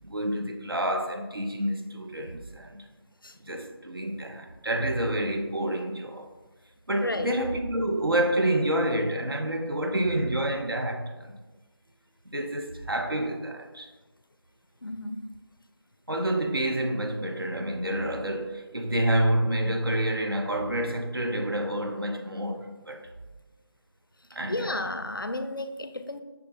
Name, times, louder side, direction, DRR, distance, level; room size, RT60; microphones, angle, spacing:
voice 1, 0.0-2.9 3.4-6.3 6.9-11.4 12.3-13.9 16.1-23.0 24.3-24.8, right 1 dB, 65° right, 0.6 m, -28 dB
voice 2, 7.0-7.3 14.8-15.3 24.5-26.2, left 2 dB, 60° left, 0.4 m, -33 dB
5.8 x 3.7 x 2.4 m
figure-of-eight pair, 175°, 13 cm